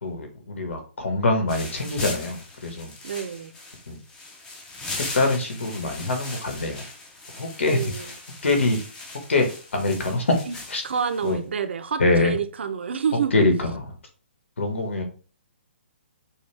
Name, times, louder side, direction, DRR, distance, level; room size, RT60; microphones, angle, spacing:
voice 1, 0.0-2.9 3.9-4.0 4.9-6.8 7.4-8.1 8.4-8.8 9.3-10.3 10.7-10.8 11.2-11.4 12.0-12.3 13.3-13.9 14.6-15.0, left 2 dB, 90° left, 1.6 m, -24 dB
sound 1, 1.5-11.4, left 2 dB, 10° left, 0.6 m, -39 dB
voice 2, 3.0-3.5 7.7-8.1 10.5-10.6 10.8-13.3, right 7 dB, 70° right, 0.6 m, -28 dB
6.3 x 2.4 x 3.3 m
hypercardioid pair, 170°, 6 cm